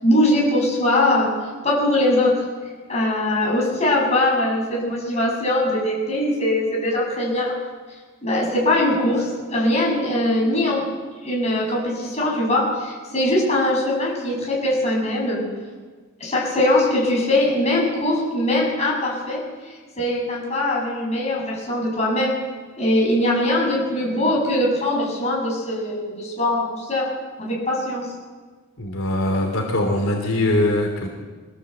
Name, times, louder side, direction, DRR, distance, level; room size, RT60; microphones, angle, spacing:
voice 1, 0.0-1.3 1.6-2.4 2.9-7.5 8.2-10.8 11.2-15.5 16.2-22.3 22.8-27.1 27.4-28.1, left 1 dB, 30° left, -3 dB, 7.6 m, -21 dB
voice 2, 28.8-31.1, left 1 dB, 75° left, 2 dB, 3.0 m, -22 dB
23.5 x 16.5 x 8.0 m, 1.5 s
head